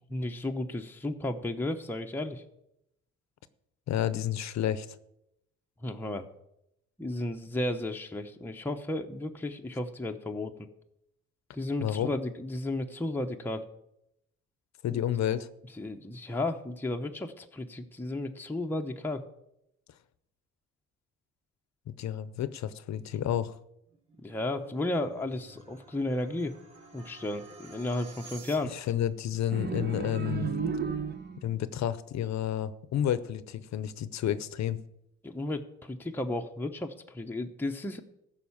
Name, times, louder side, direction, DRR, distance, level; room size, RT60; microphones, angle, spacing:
voice 1, 0.1-2.4 5.8-6.2 7.0-10.7 11.5-13.6 14.9-15.0 15.8-19.2 24.2-26.5 26.9-28.7 35.2-38.0, left 1 dB, 5° left, 3 dB, 0.8 m, -33 dB
voice 2, 3.9-4.9 11.8-12.1 14.8-15.5 21.9-23.5 28.7-30.5 31.4-34.8, left 10 dB, 65° left, 15 dB, 0.7 m, -30 dB
sound 1, 23.9-29.0, right 3 dB, 75° right, 3.9 m, -52 dB
sound 2, 29.5-31.6, right 5 dB, 35° right, 1.0 m, -33 dB
14.5 x 5.7 x 7.2 m, 0.82 s
cardioid pair, 90°, 30 cm